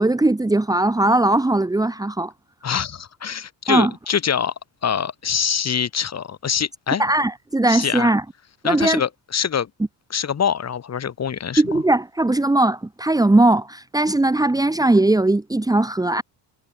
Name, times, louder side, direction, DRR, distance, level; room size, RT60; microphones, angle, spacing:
voice 1, 0.0-2.3 3.7-3.9 7.0-8.2 8.6-9.0 11.6-16.2, right 2 dB, 10° right, 2.2 m, -19 dB
voice 2, 2.6-4.5 4.8-7.0 7.7-8.1 8.6-9.7 10.1-11.6, left 7 dB, 35° left, 5.2 m, -24 dB
cardioid pair, 140°, 45 cm